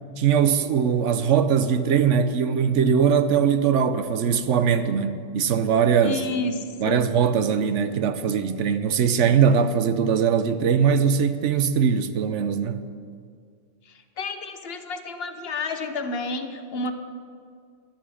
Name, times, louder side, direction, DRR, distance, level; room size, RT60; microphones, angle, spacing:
voice 1, 0.2-6.2 6.8-12.8, right 7 dB, 65° right, 1.0 m, -21 dB
voice 2, 6.0-7.0 13.9-16.9, left 3 dB, 50° left, 1.2 m, -30 dB
13.0 x 12.0 x 6.3 m
omnidirectional pair, 1.4 m